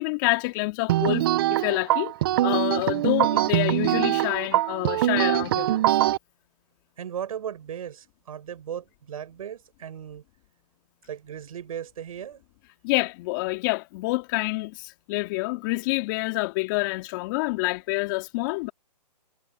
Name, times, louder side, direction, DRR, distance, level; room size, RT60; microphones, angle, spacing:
voice 1, 0.0-2.1 2.4-6.0 12.8-18.7, left 24 dB, 30° left, 2.4 m, -27 dB
sound 1, 0.9-6.2, right 14 dB, 35° right, 0.8 m, -23 dB
voice 2, 7.0-10.2 11.0-12.4, right 9 dB, 55° right, 8.0 m, -36 dB
hypercardioid pair, 145°, 21 cm